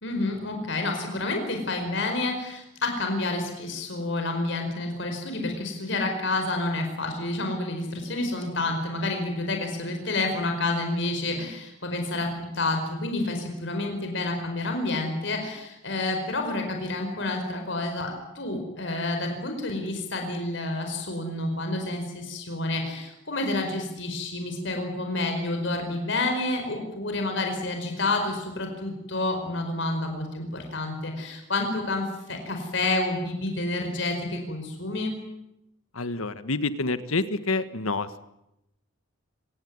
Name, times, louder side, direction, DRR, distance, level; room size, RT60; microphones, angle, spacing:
voice 1, 0.0-35.1, left 2 dB, 60° left, 4 dB, 5.0 m, -29 dB
voice 2, 35.9-38.2, left 3 dB, 85° left, 12 dB, 1.5 m, -28 dB
25.5 x 18.5 x 9.6 m, 0.86 s
head